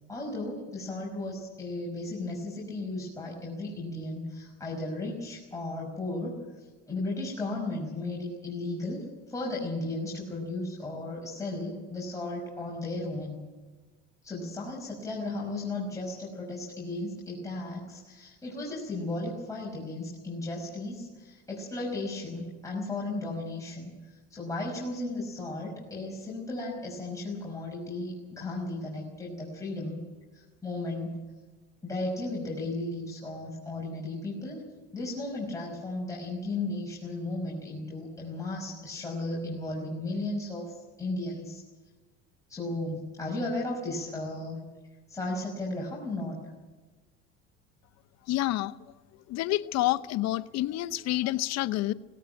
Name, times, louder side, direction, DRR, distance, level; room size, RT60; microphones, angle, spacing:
voice 1, 0.1-6.3 6.9-13.4 14.2-23.9 24.3-30.0 30.3-31.2 31.8-34.7 34.9-41.6 42.5-44.6 45.1-46.4, left 2 dB, 10° left, -4 dB, 5.5 m, -35 dB
voice 2, 48.3-48.7 49.3-51.9, left 16 dB, 60° left, 14 dB, 0.8 m, -28 dB
18.0 x 17.0 x 9.1 m, 1.3 s
supercardioid pair, 100°, 29 cm